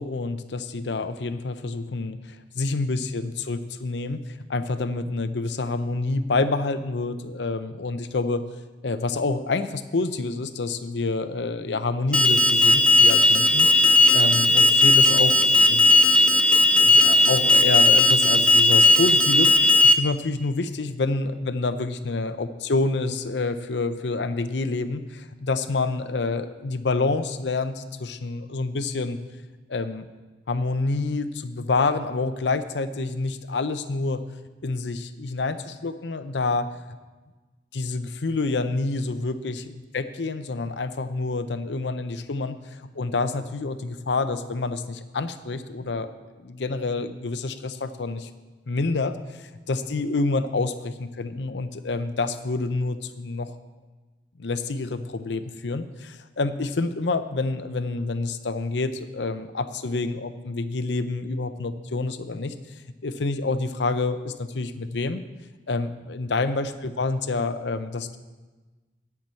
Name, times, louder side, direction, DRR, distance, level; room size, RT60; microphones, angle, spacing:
voice 1, 0.0-8.4 8.8-15.8 16.8-29.2 29.7-30.1 30.5-34.2 34.6-36.7 37.7-46.1 46.4-48.3 48.7-53.5 54.4-65.2 65.7-68.2, left 3 dB, 80° left, 11 dB, 0.7 m, -28 dB
Alarm, 12.1-19.9, left 2 dB, 5° left, 0.4 m, -16 dB
10.5 x 6.0 x 8.2 m, 1.3 s
head